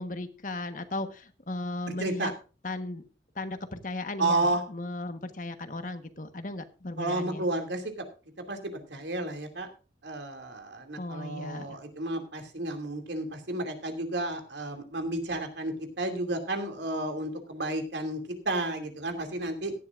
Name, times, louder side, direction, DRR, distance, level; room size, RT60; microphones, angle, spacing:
voice 1, 0.0-2.3 2.6-3.0 3.3-7.5 11.0-11.8, left 2 dB, 45° left, 9 dB, 1.3 m, -36 dB
voice 2, 1.9-2.3 4.2-4.6 7.0-8.0 8.4-9.7 10.0-19.7, right 2 dB, 80° right, 5 dB, 2.6 m, -32 dB
17.0 x 11.5 x 2.5 m, 0.34 s
head